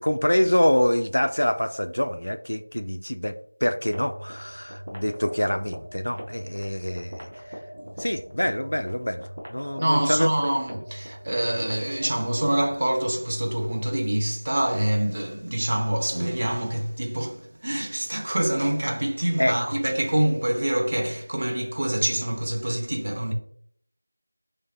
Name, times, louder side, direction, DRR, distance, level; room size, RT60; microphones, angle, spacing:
voice 1, 0.0-3.3 3.6-7.6 8.0-10.3 19.4-19.6, equal, 80° left, 0.4 m, -25 dB
sound 1, 3.9-12.9, equal, 45° right, 1.0 m, -41 dB
voice 2, 9.8-23.3, right 1 dB, 30° right, 0.5 m, -26 dB
5.9 x 3.2 x 2.7 m
figure-of-eight pair, 180°, 0 cm